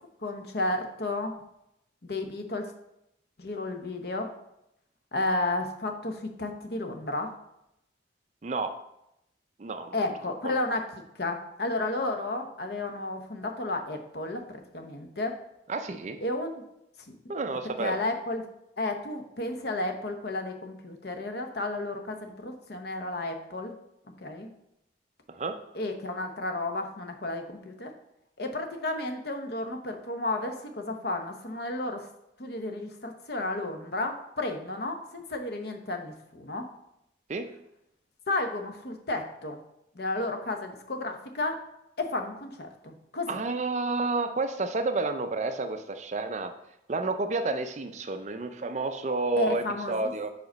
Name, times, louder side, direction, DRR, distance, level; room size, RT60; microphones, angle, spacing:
voice 1, 0.2-1.3 2.0-2.7 3.4-4.3 5.1-7.3 9.9-10.8 11.2-15.3 16.2-16.6 17.8-18.4 18.8-23.7 24.2-24.5 25.7-27.9 28.4-32.1 32.4-36.7 38.3-39.6 40.0-41.6 42.0-43.3 49.4-49.9, left 2 dB, 55° left, 5 dB, 0.8 m, -32 dB
voice 2, 8.4-8.7 9.6-10.0 10.4-10.6 15.7-16.2 17.3-18.0 25.3-25.5 37.3-37.5 43.3-46.5 46.9-50.3, right 3 dB, 35° right, 8 dB, 0.4 m, -30 dB
5.0 x 4.9 x 5.2 m, 0.82 s
head